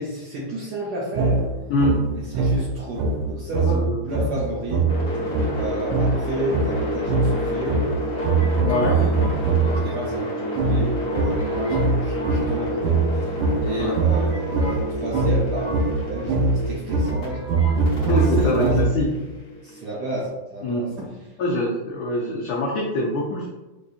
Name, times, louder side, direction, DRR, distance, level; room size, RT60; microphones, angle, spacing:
voice 1, 0.0-1.4 2.1-5.3 5.5-7.8 8.8-9.1 9.4-17.6 17.9-18.8 19.6-21.1, right 1 dB, 70° right, -4 dB, 1.1 m, -32 dB
sound 1, 1.1-9.9 10.6-19.2, right 3 dB, 90° right, 1.4 m, -23 dB
voice 2, 3.6-4.0 8.6-9.0 13.8-14.0 18.1-19.1 20.6-20.9 21.4-23.5, left 1 dB, 80° left, -3 dB, 0.8 m, -24 dB
sound 2, 4.9-17.3 17.9-20.0, equal, 45° left, 0.9 m, -30 dB
sound 3, 6.7-7.4 8.1-10.4 10.7-10.8 11.1-11.9 12.2-13.1 13.7-13.8 14.0-16.3 16.6-16.7 17.0-17.8 18.1-18.3, equal, 10° left, 0.6 m, -40 dB
4.6 x 2.5 x 2.4 m, 1.0 s
omnidirectional pair, 2.3 m